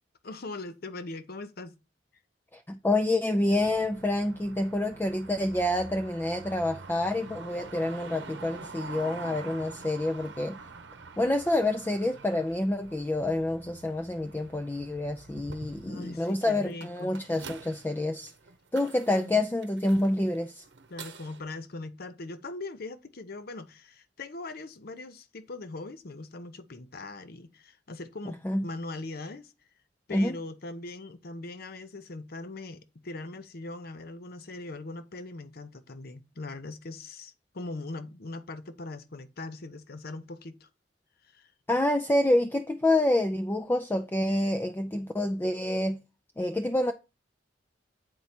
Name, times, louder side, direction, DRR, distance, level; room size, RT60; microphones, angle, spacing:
voice 1, 0.2-1.8 15.9-17.2 19.1-19.4 20.9-29.5 30.1-40.7 41.3-41.5, left 2 dB, 60° left, 0.7 m, -40 dB
voice 2, 2.5-10.6 11.2-18.3 18.7-20.6 28.2-28.7 30.1-30.4 41.7-46.0 46.4-46.9, left 1 dB, 10° left, 0.4 m, -27 dB
sound 1, 3.5-21.4, right 4 dB, 70° right, 0.8 m, -46 dB
8.0 x 4.6 x 4.2 m
head